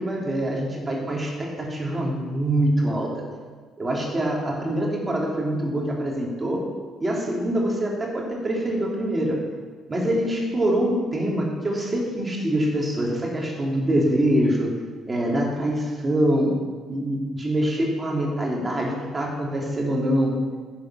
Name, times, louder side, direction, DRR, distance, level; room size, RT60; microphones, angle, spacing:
voice 1, 0.0-3.2 3.8-6.6 7.0-9.4 9.9-14.7 15.1-16.5 16.9-20.3, right 1 dB, 25° right, -2 dB, 3.2 m, -24 dB
10.5 x 7.6 x 6.0 m, 1.5 s
figure-of-eight pair, 45°, 0 cm